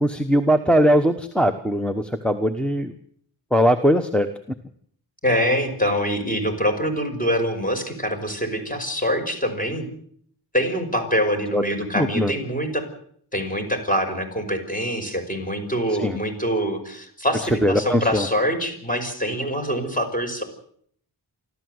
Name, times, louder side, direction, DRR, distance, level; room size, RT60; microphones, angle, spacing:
voice 1, 0.0-2.9 3.5-4.3 11.5-11.6 11.9-12.3 16.0-16.2 17.6-18.2, equal, ahead, 5 dB, 1.1 m, -20 dB
voice 2, 5.2-9.9 10.5-12.8 13.3-20.4, equal, 20° left, 5 dB, 5.5 m, -24 dB
29.0 x 13.0 x 8.0 m, 0.64 s
wide cardioid pair, 90°, 42 cm